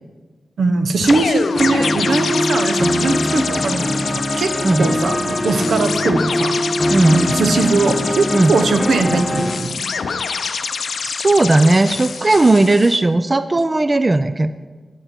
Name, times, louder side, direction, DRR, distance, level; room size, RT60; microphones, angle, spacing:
voice 1, 0.6-4.5 4.8-6.5 7.1-9.8, right 3 dB, 85° right, 6 dB, 0.8 m, -20 dB
sound 1, 1.0-13.0, left 5 dB, 80° left, 0.5 m, -26 dB
sound 2, 1.6-9.6, left 1 dB, 20° left, 1.2 m, -22 dB
voice 2, 6.9-7.2 8.3-8.5 11.0-14.5, right 2 dB, 35° right, 12 dB, 0.3 m, -15 dB
8.9 x 8.8 x 4.3 m, 1.4 s
cardioid pair, 65°, 0 cm